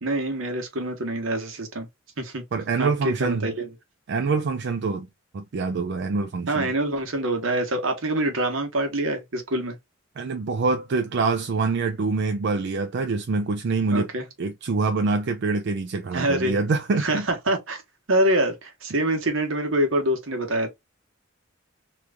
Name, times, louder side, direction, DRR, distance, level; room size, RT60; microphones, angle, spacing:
voice 1, 0.0-1.9 2.2-2.4 2.8-3.7 6.5-9.8 13.9-14.2 16.1-16.5 17.0-17.8 18.1-20.7, right 1 dB, 80° right, 1.1 m, -25 dB
voice 2, 2.5-3.5 4.1-5.1 5.3-6.7 10.2-14.1 14.4-17.3, right 4 dB, 60° right, 0.4 m, -25 dB
3.1 x 2.5 x 3.4 m
head